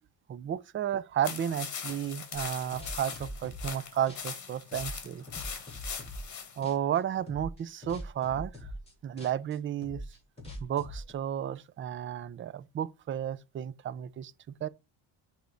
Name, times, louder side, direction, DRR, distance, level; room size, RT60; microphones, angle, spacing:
voice 1, 0.3-5.2 6.6-8.5 9.0-10.0 10.6-14.3 14.6-14.7, right 10 dB, 30° right, 0.3 m, -32 dB
sound 1, 1.2-6.6, left 6 dB, 35° left, 1.7 m, -40 dB
sound 2, 2.3-3.8 4.1-6.4 6.6-7.0 7.3-11.1, equal, 10° left, 3.2 m, -43 dB
9.4 x 3.5 x 3.8 m
cardioid pair, 125°, 47 cm